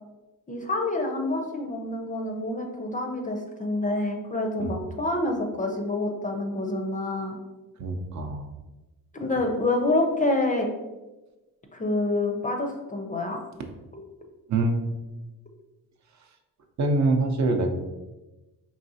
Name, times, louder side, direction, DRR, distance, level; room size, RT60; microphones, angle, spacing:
voice 1, 0.5-7.4 9.1-10.7 11.7-13.4 13.9-14.0, left 2 dB, 20° left, 2 dB, 0.4 m, -27 dB
voice 2, 7.8-8.5 14.5-14.8 16.8-17.7, right 2 dB, 50° right, 4 dB, 0.6 m, -24 dB
4.7 x 3.1 x 2.7 m, 1.1 s
cardioid pair, 130°, 37 cm